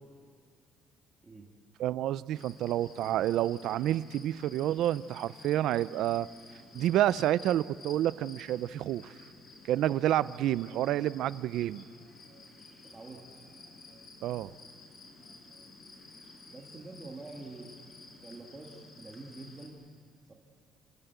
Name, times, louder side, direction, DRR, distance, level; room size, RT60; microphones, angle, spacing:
voice 1, 1.8-6.3 6.7-9.1 9.6-11.8 14.2-14.5, right 12 dB, 75° right, 18 dB, 0.5 m, -29 dB
sound 1, 2.3-19.7, left 3 dB, 35° left, 5.0 m, -52 dB
voice 2, 12.9-13.3 16.5-17.7 18.2-19.8 20.3-20.4, right 3 dB, 20° right, -2 dB, 2.0 m, -46 dB
28.0 x 16.5 x 8.2 m, 2.2 s
cardioid pair, 150°, 0 cm